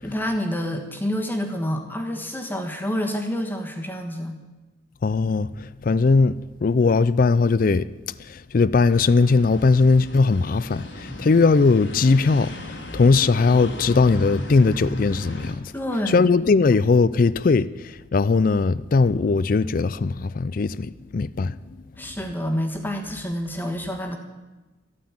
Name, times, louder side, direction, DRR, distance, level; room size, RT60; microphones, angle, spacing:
voice 1, 0.0-4.4 15.7-16.3 22.0-24.2, equal, 10° left, 1.4 m, -28 dB
voice 2, 5.0-7.9 8.3-15.7 16.1-21.6, left 4 dB, 45° left, 0.4 m, -19 dB
sound 1, 8.9-15.5, left 1 dB, 85° left, 2.3 m, -35 dB
14.0 x 9.3 x 8.7 m
head